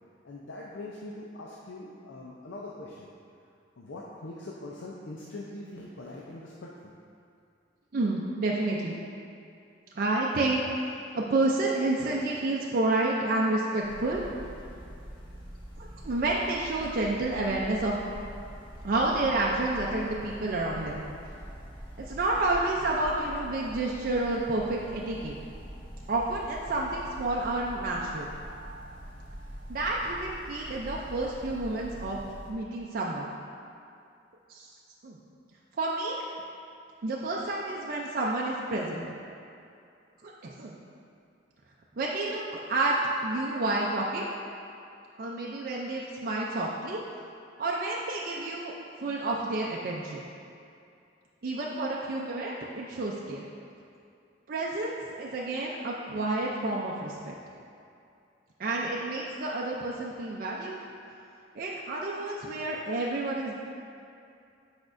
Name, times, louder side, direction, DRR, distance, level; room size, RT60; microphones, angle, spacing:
voice 1, 0.2-3.1 3.8-6.9, left 2 dB, 75° left, -4 dB, 0.6 m, -42 dB
voice 2, 7.9-9.0 9.9-14.2 15.8-17.9 18.8-21.0 22.0-25.4 26.1-28.3 29.7-32.2 32.5-33.3 34.5-34.7 35.0-35.2 35.8-36.2 37.0-39.1 40.2-40.8 42.0-43.0 43.2-44.3 45.2-47.0 47.6-48.7 49.0-50.3 51.4-53.4 54.5-57.4 58.6-60.8 61.5-63.6, right 2 dB, 50° right, -3 dB, 0.5 m, -30 dB
sound 1, 13.8-32.5, equal, 25° left, 1.2 m, -44 dB
8.3 x 5.1 x 2.5 m, 2.5 s
head